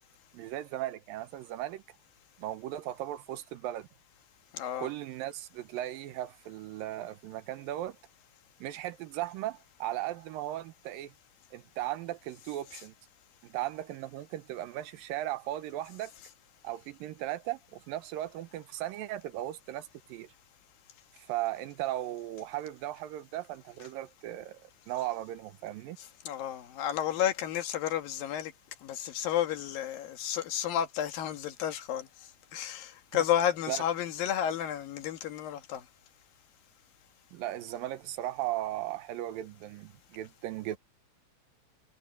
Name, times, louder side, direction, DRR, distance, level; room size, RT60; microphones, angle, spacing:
voice 1, 0.3-1.8 2.4-3.9 4.8-8.0 8.6-11.1 11.5-12.9 13.4-16.1 16.6-20.3 21.1-24.6 24.9-26.0 33.7-33.8 37.3-40.8, right 14 dB, 85° right, 2.6 m, -37 dB
voice 2, 4.5-4.9 26.0-28.5 28.8-32.1 32.5-35.8, left 10 dB, 80° left, 3.3 m, -31 dB
omnidirectional pair, 4.1 m